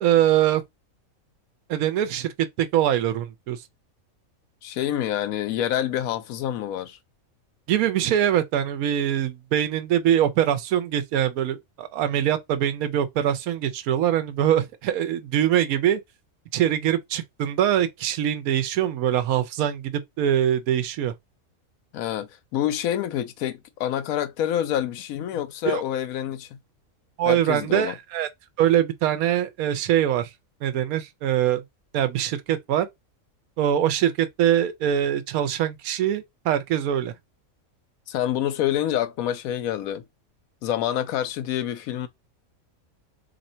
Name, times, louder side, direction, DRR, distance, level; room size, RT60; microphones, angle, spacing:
voice 1, 0.0-0.6 1.7-3.6 7.7-16.0 16.5-21.1 25.6-25.8 27.2-28.3 28.6-30.3 30.6-31.6 31.9-32.9 33.6-37.1, right 10 dB, 90° right, 1.1 m, -23 dB
voice 2, 4.6-7.0 21.9-26.6 27.2-27.9 38.1-40.0 40.6-42.1, left 11 dB, 85° left, 1.0 m, -27 dB
2.8 x 2.6 x 4.2 m
omnidirectional pair, 1.5 m